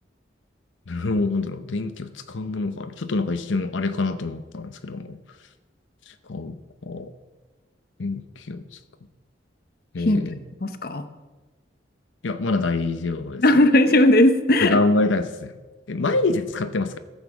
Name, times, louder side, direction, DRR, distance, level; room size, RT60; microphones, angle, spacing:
voice 1, 0.9-5.2 6.1-7.1 8.0-8.8 9.9-10.4 12.2-13.4 14.6-15.6 15.9-17.0, left 3 dB, 85° left, 10 dB, 0.7 m, -26 dB
voice 2, 10.1-11.0 13.4-14.8, left 1 dB, 50° left, 10 dB, 0.7 m, -18 dB
14.5 x 7.1 x 6.0 m, 1.2 s
head